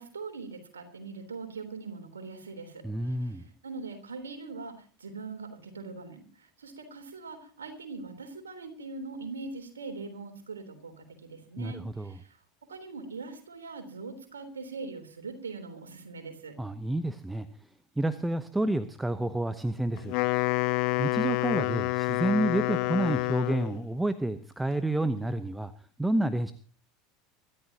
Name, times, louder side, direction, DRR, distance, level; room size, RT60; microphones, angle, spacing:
voice 1, 0.0-12.4 12.7-16.6, right 4 dB, 80° right, 6 dB, 3.6 m, -42 dB
voice 2, 2.8-3.4 11.6-12.2 16.6-17.5 18.0-20.1 21.0-25.7 26.0-26.5, right 1 dB, 10° right, 12 dB, 0.9 m, -29 dB
Wind instrument woodwind instrument, 20.0-23.8, left 20 dB, 55° left, 0.7 m, -28 dB
24.5 x 13.5 x 2.9 m, 0.40 s
figure-of-eight pair, 75°, 0 cm